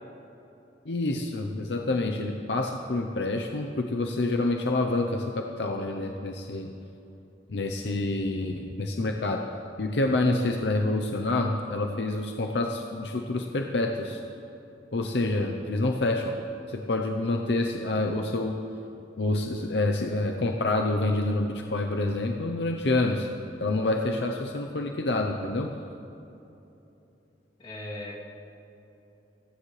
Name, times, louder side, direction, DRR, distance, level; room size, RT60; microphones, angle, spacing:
voice 1, 0.9-6.7 7.5-9.4 9.8-14.2 14.9-16.4 16.7-18.6 19.2-23.3 23.6-25.7, left 2 dB, 70° left, 3 dB, 0.7 m, -27 dB
voice 2, 27.6-28.2, left 1 dB, 30° left, -6 dB, 2.9 m, -38 dB
29.5 x 10.0 x 3.3 m, 2.9 s
head